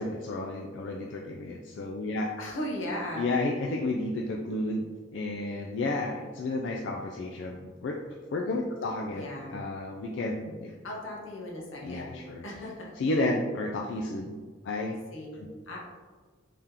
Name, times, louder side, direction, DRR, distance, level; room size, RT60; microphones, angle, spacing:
voice 1, 0.0-2.3 3.1-8.0 8.3-10.7 11.8-12.4 13.0-14.4 14.6-15.0 15.4-15.5, left 2 dB, 65° left, 0 dB, 0.3 m, -32 dB
voice 2, 2.4-3.2 9.1-9.6 10.8-12.9 15.1-15.4 15.7-15.8, left 1 dB, 85° left, -2 dB, 0.9 m, -37 dB
3.5 x 2.8 x 3.6 m, 1.4 s
head